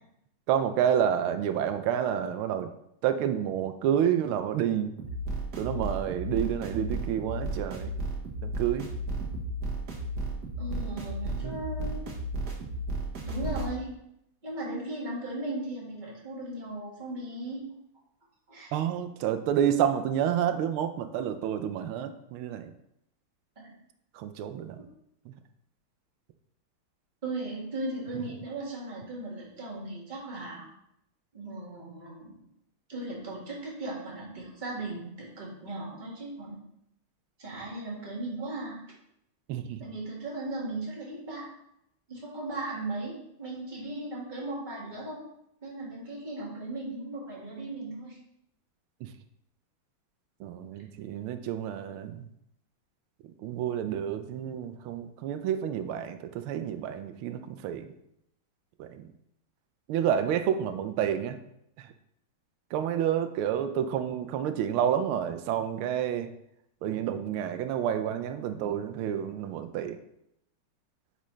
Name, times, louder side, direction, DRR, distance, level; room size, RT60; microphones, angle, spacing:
voice 1, 0.5-2.7 3.0-4.9 5.6-7.9 8.4-8.9 11.4-11.6 18.7-22.7 24.1-24.9 25.3-25.4 39.5-39.8 49.0-49.1 50.4-52.3 53.4-57.9 58.8-59.1 59.9-61.4 61.8-61.9 62.7-66.3 66.8-70.0, right 9 dB, 90° right, 9 dB, 1.4 m, -29 dB
sound 1, 5.0-13.7, right 2 dB, 55° right, 1.6 m, -34 dB
voice 2, 10.6-12.0 13.2-13.9 14.4-17.6 18.5-18.7 23.6-23.8 27.2-30.7 31.3-32.5 32.9-36.6 37.4-38.8 39.8-41.5 42.1-45.2 45.6-48.2, right 2 dB, 25° right, -4 dB, 1.8 m, -37 dB
8.2 x 5.1 x 3.2 m, 0.78 s
omnidirectional pair, 2.3 m